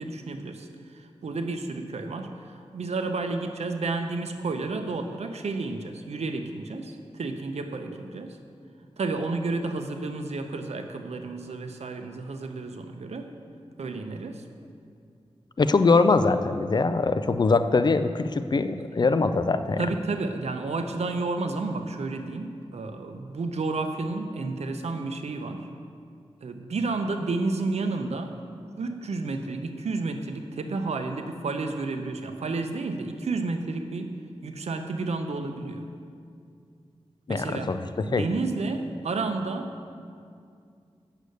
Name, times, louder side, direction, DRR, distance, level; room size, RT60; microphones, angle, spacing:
voice 1, 0.0-8.4 9.0-13.3 13.8-14.4 18.8-18.9 19.8-25.7 26.4-28.4 28.8-34.1 34.4-35.8 37.3-37.7 38.0-39.9, right 3 dB, 85° right, 6 dB, 0.7 m, -31 dB
voice 2, 15.6-19.8 37.3-38.2, left 3 dB, 40° left, 10 dB, 0.4 m, -22 dB
8.2 x 6.6 x 6.4 m, 2.3 s
wide cardioid pair, 100°, 11 cm